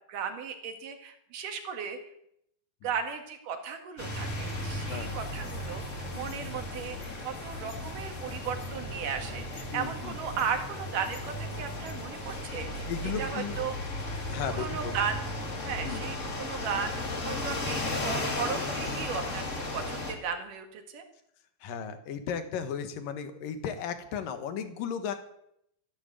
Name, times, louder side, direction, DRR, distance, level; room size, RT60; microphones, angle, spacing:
voice 1, 0.1-2.0 2.8-12.9 13.2-13.7 14.6-15.2 15.7-21.0, right 7 dB, 75° right, 5 dB, 3.5 m, -36 dB
sound 1, 4.0-20.1, left 1 dB, 25° left, 2.1 m, -35 dB
voice 2, 9.7-10.2 12.9-13.6 14.3-15.0 15.8-16.1 21.6-25.1, left 7 dB, 80° left, 8 dB, 3.1 m, -35 dB
15.0 x 11.5 x 8.2 m, 0.75 s
omnidirectional pair, 3.9 m